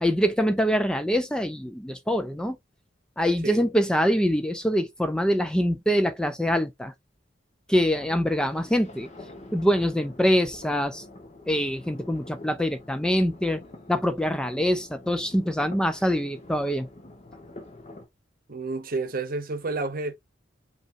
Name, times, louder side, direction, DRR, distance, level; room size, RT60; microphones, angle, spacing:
voice 1, 0.0-2.6 3.2-6.9 7.7-9.1 9.5-11.0 11.5-13.6 13.9-16.9, equal, 5° left, 0.4 m, -24 dB
sound 1, 8.0-18.1, left 2 dB, 40° left, 1.2 m, -46 dB
voice 2, 18.5-20.1, right 3 dB, 50° right, 0.9 m, -30 dB
5.3 x 2.8 x 2.6 m
head